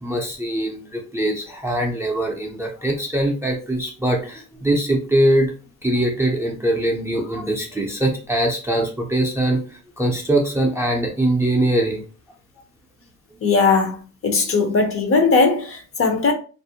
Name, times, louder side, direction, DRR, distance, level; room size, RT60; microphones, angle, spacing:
voice 1, 0.0-5.5 5.8-9.6 10.0-12.0, right 1 dB, 10° right, 0.5 m, -22 dB
voice 2, 13.4-14.0 14.2-16.3, left 4 dB, 40° left, 0.6 m, -18 dB
2.5 x 2.0 x 2.7 m
cardioid pair, 110°, 34 cm